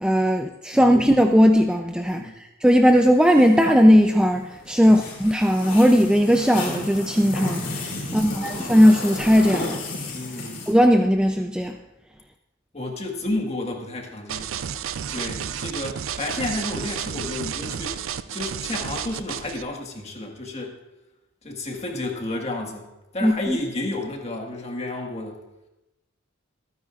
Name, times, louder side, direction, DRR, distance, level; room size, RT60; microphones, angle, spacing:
voice 1, 0.0-9.8 10.7-11.8 23.2-23.6, equal, 5° right, 4 dB, 0.4 m, -18 dB
sound 1, 2.8-10.7, left 2 dB, 65° left, 3.3 m, -33 dB
voice 2, 8.0-8.6 10.1-10.6 12.7-14.5 15.1-20.7 21.4-22.9 23.1-25.4, left 2 dB, 30° left, 1 dB, 1.7 m, -31 dB
sound 2, 14.3-19.6, right 8 dB, 80° right, 0.5 m, -31 dB
25.5 x 9.5 x 2.5 m, 0.97 s
head